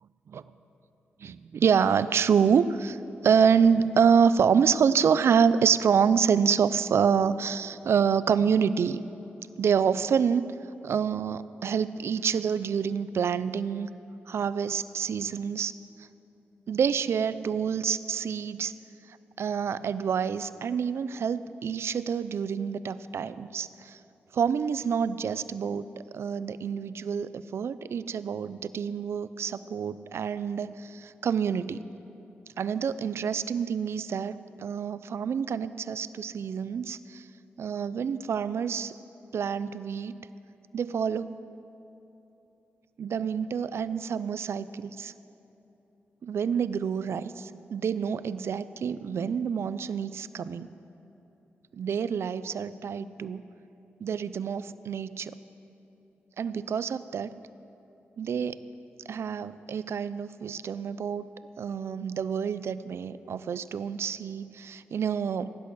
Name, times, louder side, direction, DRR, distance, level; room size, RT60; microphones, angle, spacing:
voice 1, 1.2-3.0 3.2-9.0 9.6-10.5 10.8-13.9 14.3-15.7 16.7-18.7 19.4-24.0 24.3-25.8 26.1-31.9 32.6-37.3 37.6-38.9 39.3-40.2 40.7-41.3 43.0-45.1 46.2-50.7 51.7-53.4 54.0-55.3 56.4-57.3 58.2-58.6 59.1-61.3 61.6-65.6, right 7 dB, 70° right, 15 dB, 0.5 m, -27 dB
15.5 x 11.5 x 6.2 m, 3.0 s
cardioid pair, 55°, 5 cm